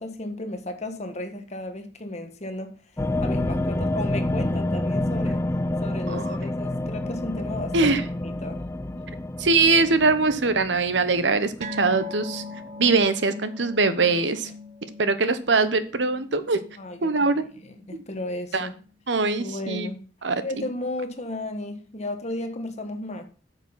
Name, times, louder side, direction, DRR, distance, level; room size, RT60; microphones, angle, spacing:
voice 1, 0.0-2.7 3.2-5.4 5.8-7.9 8.2-8.6 16.8-17.4 17.6-18.7 19.3-20.0 20.4-23.2, left 1 dB, 35° left, 1.5 m, -34 dB
sound 1, 3.0-12.2 12.5-12.6 12.9-13.0, left 1 dB, 15° left, 0.4 m, -28 dB
voice 2, 6.1-6.5 7.7-8.1 9.4-12.4 12.8-14.5 15.0-16.6 17.0-17.5 17.9-18.0 18.5-18.7 19.1-19.9 20.2-20.4, right 3 dB, 70° right, 1.0 m, -22 dB
sound 2, 11.6-18.4 18.7-18.9 19.3-19.4, left 2 dB, 40° right, 0.9 m, -41 dB
8.9 x 7.1 x 5.6 m
head